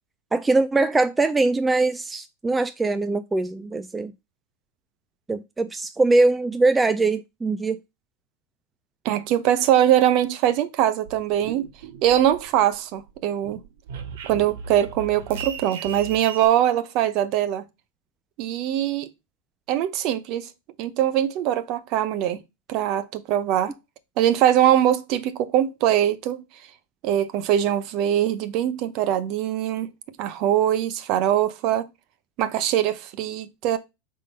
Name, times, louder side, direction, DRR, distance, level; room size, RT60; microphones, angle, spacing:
voice 1, 0.3-4.1 5.3-7.8, right 3 dB, 10° right, 0.4 m, -22 dB
voice 2, 9.0-11.7 12.0-13.6 14.3-17.7 18.4-19.1 19.7-20.5 20.8-22.4 22.7-23.7 24.2-26.4 27.0-29.9 30.2-31.9 32.4-33.8, right 11 dB, 45° right, 0.8 m, -22 dB
sound 1, 11.0-12.7 13.1-16.5, right 6 dB, 70° right, 1.3 m, -37 dB
5.3 x 3.8 x 5.3 m
supercardioid pair, 135°, 0 cm